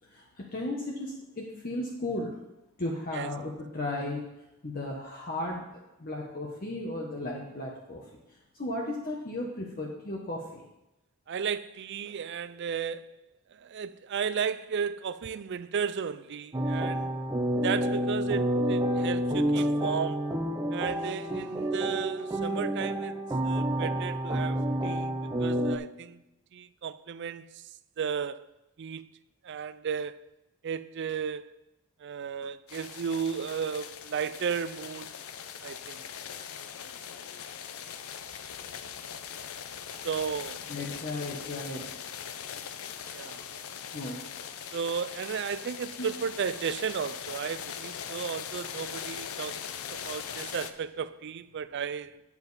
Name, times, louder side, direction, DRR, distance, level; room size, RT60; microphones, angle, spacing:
voice 1, 0.1-2.4 2.8-4.2 4.6-8.0 8.6-10.6 40.7-41.8 43.9-44.2 46.0-46.1, left 1 dB, 40° left, 1.0 m, -35 dB
voice 2, 11.3-13.1 13.5-17.2 17.6-20.3 20.7-26.2 26.5-27.7 28.0-28.5 28.8-29.1 29.4-30.1 30.6-31.5 32.0-35.1 35.6-36.0 40.0-40.6 43.1-43.4 44.7-52.2, right 6 dB, 50° right, 0.4 m, -34 dB
sound 1, 16.5-25.8, equal, 15° right, 0.6 m, -29 dB
sound 2, 32.7-50.7, left 8 dB, 70° left, 0.6 m, -41 dB
9.0 x 7.2 x 4.1 m
head